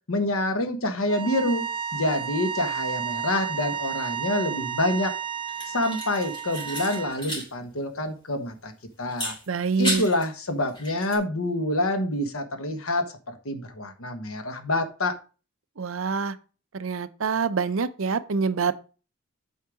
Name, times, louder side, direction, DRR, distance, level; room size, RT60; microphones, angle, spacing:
voice 1, 0.1-5.1 5.7-8.7 9.0-9.3 9.8-15.1, left 1 dB, 70° left, 1.3 m, -27 dB
sound 1, 1.1-7.2, right 8 dB, 25° right, 0.8 m, -32 dB
sound 2, 5.5-7.5 7.8-7.9 9.1-10.3 10.7-11.2, equal, 20° left, 3.0 m, -33 dB
voice 2, 9.5-10.0 15.8-16.4 16.7-18.7, right 5 dB, 65° right, 0.6 m, -26 dB
8.3 x 4.6 x 5.0 m
head